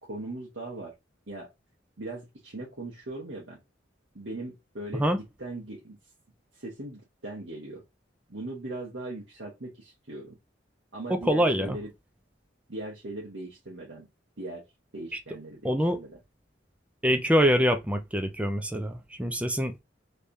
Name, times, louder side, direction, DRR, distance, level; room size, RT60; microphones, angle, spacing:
voice 1, 0.1-0.9 1.3-1.5 2.0-3.6 4.1-6.0 6.5-7.8 8.3-10.4 10.9-11.9 12.7-14.1 14.4-14.6 14.9-16.2, right 2 dB, 70° right, 1.3 m, -39 dB
voice 2, 11.1-11.8 15.6-16.0 17.0-19.7, equal, 5° right, 0.6 m, -25 dB
3.3 x 3.3 x 2.6 m
head